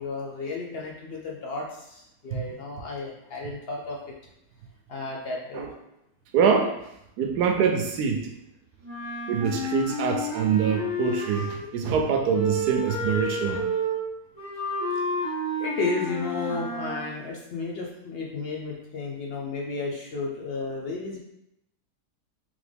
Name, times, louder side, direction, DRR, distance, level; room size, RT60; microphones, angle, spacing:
voice 1, 0.0-4.1 4.9-5.7 15.6-21.2, left 3 dB, 55° left, -2 dB, 0.7 m, -33 dB
voice 2, 6.3-6.8 7.2-8.3 9.3-13.7, right 6 dB, 85° right, 4 dB, 1.1 m, -24 dB
Wind instrument woodwind instrument, 8.8-11.7 12.3-17.1, equal, 25° left, 1.4 m, -30 dB
3.5 x 3.4 x 3.4 m, 0.81 s
omnidirectional pair, 1.7 m